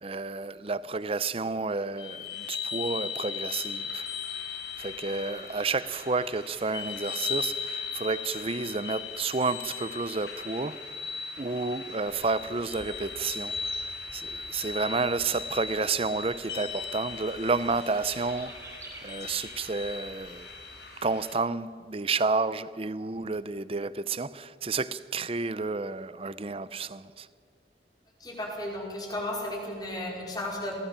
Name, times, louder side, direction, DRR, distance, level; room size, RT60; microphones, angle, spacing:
voice 1, 0.0-4.0 4.8-10.8 11.4-18.5 19.0-20.5 21.0-27.3, right 3 dB, 30° right, 0.6 m, -31 dB
sound 1, 2.0-21.3, left 5 dB, 70° left, 6.8 m, -38 dB
Bird / Insect, 12.1-20.6, right 1 dB, 15° right, 5.2 m, -51 dB
voice 2, 28.2-30.8, left 1 dB, 25° left, 5.0 m, -34 dB
27.0 x 18.0 x 7.4 m
head